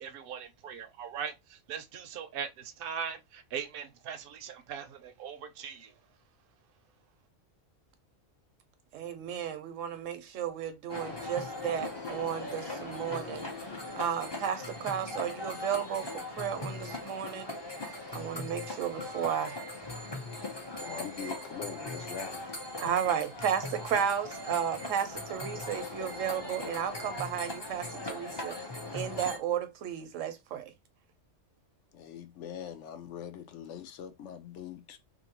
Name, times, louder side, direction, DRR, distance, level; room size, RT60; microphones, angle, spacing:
voice 1, 0.0-5.9, right 7 dB, 60° right, 0.6 m, -40 dB
voice 2, 8.9-13.5 14.0-17.5 18.1-19.6 22.8-28.6 28.9-30.7, right 9 dB, 85° right, 1.0 m, -33 dB
sound 1, 10.9-29.4, left 2 dB, 30° left, 0.5 m, -39 dB
voice 3, 20.8-22.5 31.9-35.0, left 8 dB, 70° left, 0.9 m, -42 dB
2.7 x 2.5 x 2.8 m
omnidirectional pair, 1.3 m